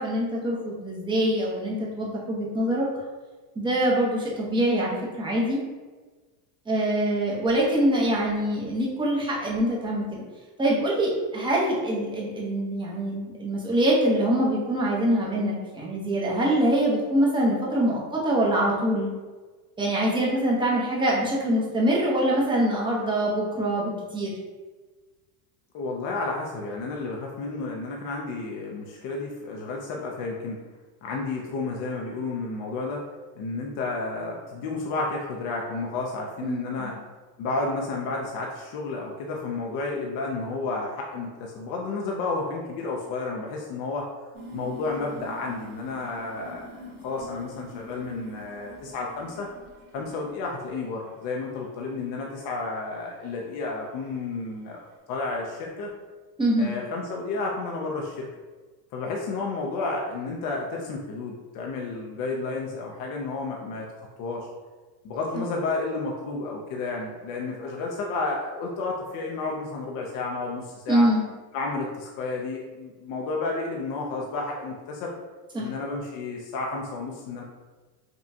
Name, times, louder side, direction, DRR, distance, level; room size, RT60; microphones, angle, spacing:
voice 1, 0.0-2.9 3.6-5.6 6.7-10.2 10.6-19.1 19.8-24.3 36.4-36.9 56.4-56.7 70.9-71.2 75.5-75.7, right 1 dB, 10° right, -4 dB, 0.8 m, -24 dB
voice 2, 25.7-30.6 31.0-33.0 33.4-36.9 37.4-44.1 44.5-46.6 47.0-49.5 49.9-55.9 56.6-58.3 58.9-64.5 65.0-71.1 71.5-75.1 75.5-77.4, left 3 dB, 45° left, -1 dB, 0.6 m, -31 dB
sound 1, 44.3-50.8 51.1-51.6 52.3-52.4 53.3-53.4 54.0-54.2, left 1 dB, 45° right, 1.3 m, -45 dB
5.1 x 2.3 x 2.7 m, 1.3 s
supercardioid pair, 140°, 48 cm